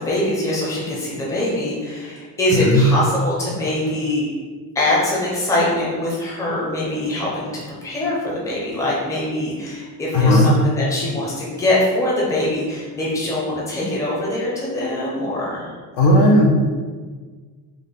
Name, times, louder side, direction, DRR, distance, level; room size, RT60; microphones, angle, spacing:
voice 1, 0.0-4.3 4.7-7.5 7.8-15.7, left 1 dB, 10° left, -6 dB, 0.6 m, -23 dB
voice 2, 2.5-2.9 10.1-10.5 15.9-16.5, left 1 dB, 70° left, 0 dB, 0.8 m, -14 dB
3.7 x 2.2 x 3.6 m, 1.5 s
cardioid pair, 160°, 40 cm